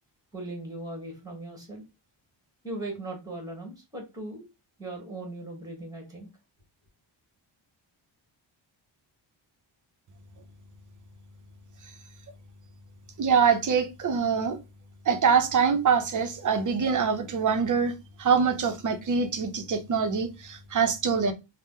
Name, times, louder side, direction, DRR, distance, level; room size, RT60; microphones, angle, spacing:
voice 1, 0.3-1.8 2.6-4.4 4.8-6.3, right 2 dB, 10° right, 1.1 m, -38 dB
voice 2, 13.2-14.6 15.1-21.3, right 6 dB, 40° right, 0.5 m, -24 dB
2.8 x 2.1 x 3.5 m
wide cardioid pair, 135°, 47 cm